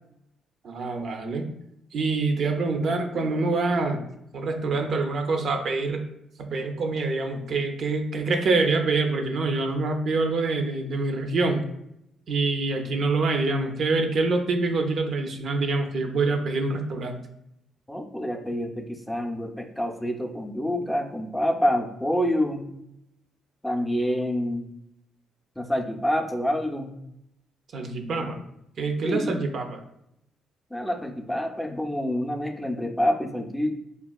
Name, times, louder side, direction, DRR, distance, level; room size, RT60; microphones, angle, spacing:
voice 1, 0.6-1.5 1.9-4.0 4.3-6.1 6.4-11.6 12.3-17.2 27.7-28.4 28.8-29.8, right 3 dB, 60° right, 4 dB, 0.4 m, -25 dB
voice 2, 17.9-22.6 23.6-24.7 25.6-26.9 28.2-28.3 29.0-29.4 30.7-33.7, equal, 5° left, 3 dB, 0.5 m, -27 dB
3.4 x 2.3 x 2.3 m, 0.79 s
supercardioid pair, 55°, 0 cm